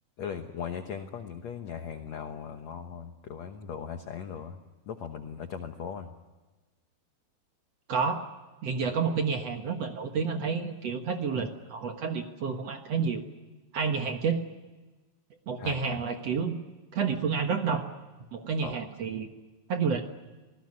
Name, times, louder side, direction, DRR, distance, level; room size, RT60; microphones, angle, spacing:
voice 1, 0.2-4.6 4.9-6.1 15.6-16.0 18.6-18.8, left 7 dB, 65° left, 7 dB, 1.8 m, -38 dB
voice 2, 7.9-8.2 8.6-13.2 13.7-14.4 15.5-16.6 16.9-17.9 18.3-19.3 19.7-20.0, right 5 dB, 60° right, 5 dB, 1.8 m, -29 dB
27.0 x 19.5 x 9.7 m, 1.2 s
omnidirectional pair, 4.6 m